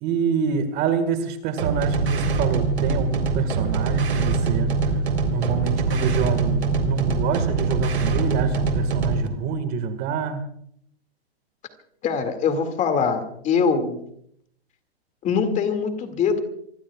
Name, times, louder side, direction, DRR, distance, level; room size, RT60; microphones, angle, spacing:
voice 1, 0.0-4.7 5.3-10.4, right 6 dB, 30° right, 9 dB, 1.9 m, -26 dB
sound 1, 1.6-9.3, right 4 dB, 80° right, 3.9 m, -23 dB
voice 2, 12.0-14.0 15.2-16.4, left 5 dB, 25° left, 7 dB, 2.3 m, -23 dB
27.0 x 21.0 x 2.4 m, 0.67 s
hypercardioid pair, 135°, 32 cm